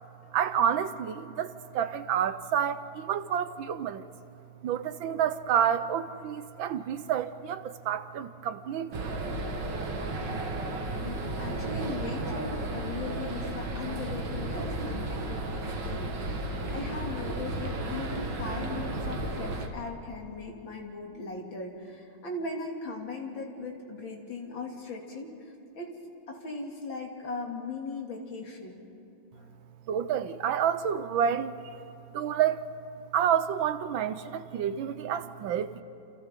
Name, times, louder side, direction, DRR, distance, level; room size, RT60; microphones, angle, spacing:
voice 1, 0.3-4.0 4.6-9.1 29.9-31.8 32.1-32.6 33.1-35.8, right 9 dB, 85° right, 12 dB, 1.6 m, -29 dB
sound 1, 8.9-19.7, right 2 dB, 65° right, 2.3 m, -33 dB
voice 2, 11.0-26.0 26.3-28.9, left 3 dB, 80° left, 0 dB, 3.4 m, -39 dB
30.0 x 28.0 x 3.8 m, 2.8 s
omnidirectional pair, 2.1 m